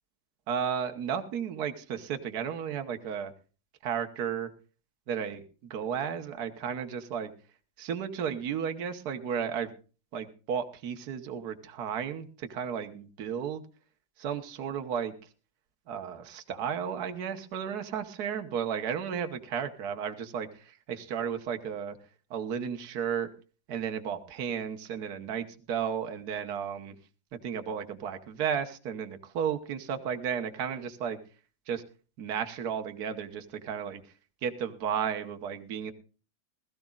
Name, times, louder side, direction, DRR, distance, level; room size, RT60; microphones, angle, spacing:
voice 1, 0.5-3.3 3.8-4.5 5.1-5.4 5.7-7.3 7.8-9.7 10.1-13.6 14.2-15.1 15.9-22.0 22.3-23.3 23.7-26.9 27.4-31.2 31.7-31.8 32.2-34.0 34.4-35.9, right 7 dB, 60° right, 7 dB, 1.6 m, -33 dB
20.0 x 14.0 x 2.4 m, 0.35 s
omnidirectional pair, 2.0 m